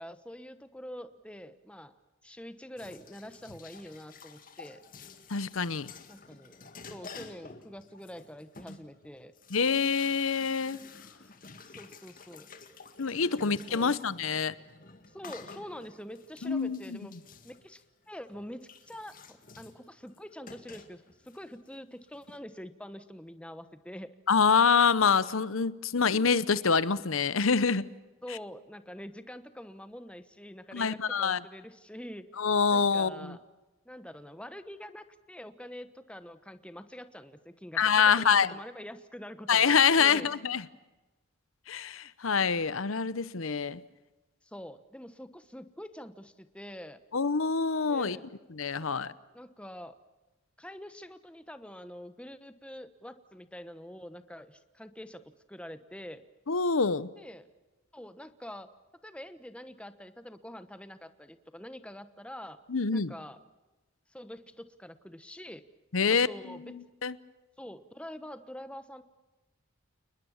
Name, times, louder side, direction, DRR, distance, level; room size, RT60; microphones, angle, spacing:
voice 1, 0.0-1.9 2.2-4.8 6.1-9.3 11.6-12.5 13.3-13.9 15.1-17.1 17.4-24.1 25.9-26.1 28.2-32.3 32.7-33.4 33.8-40.4 44.4-47.0 47.9-48.2 48.8-49.9 50.6-56.2 57.2-57.5 57.9-58.7 59.0-62.6 62.9-63.4 64.1-65.7 66.1-66.8 67.6-69.0, equal, 5° left, 1.1 m, -45 dB
sound 1, 2.8-22.4, left 4 dB, 40° left, 2.1 m, -51 dB
voice 2, 5.3-5.9 9.5-10.8 13.0-14.5 16.4-16.8 24.3-27.9 30.7-31.4 32.4-33.4 37.8-38.5 39.5-40.6 41.7-43.8 47.1-48.2 48.6-49.1 56.5-57.1 62.7-63.1 65.9-66.3 67.0-67.1, left 5 dB, 75° left, 0.8 m, -26 dB
29.5 x 21.0 x 7.3 m
head